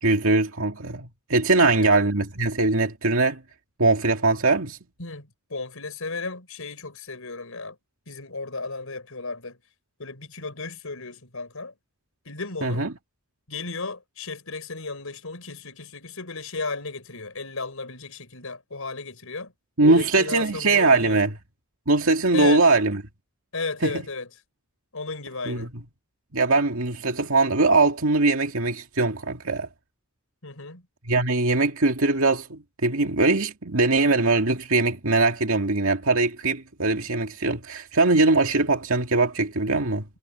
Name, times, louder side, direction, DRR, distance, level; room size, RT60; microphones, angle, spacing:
voice 1, 0.0-3.4 3.8-4.8 12.6-12.9 19.8-21.3 21.9-23.0 23.8-24.0 25.5-25.7 26.3-29.7 31.1-40.0, right 3 dB, 75° right, 2.2 m, -21 dB
voice 2, 5.0-7.8 8.1-9.6 10.0-11.7 12.2-12.8 13.5-19.5 19.8-21.2 22.3-22.7 23.5-24.3 24.9-25.7 30.4-30.9, left 3 dB, 80° left, 4.6 m, -34 dB
head